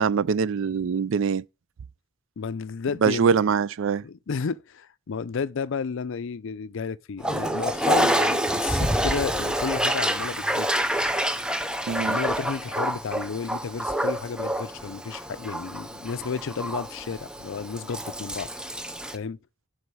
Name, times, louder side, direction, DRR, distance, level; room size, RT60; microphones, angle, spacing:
voice 1, 0.0-1.4 3.0-4.0 11.9-12.2, right 6 dB, 65° right, 0.4 m, -23 dB
voice 2, 2.4-3.3 4.0-10.7 12.0-18.5 19.1-19.4, left 5 dB, 65° left, 0.5 m, -32 dB
Toilet flush, 7.2-19.2, equal, 5° right, 0.6 m, -27 dB
7.9 x 5.4 x 6.9 m
head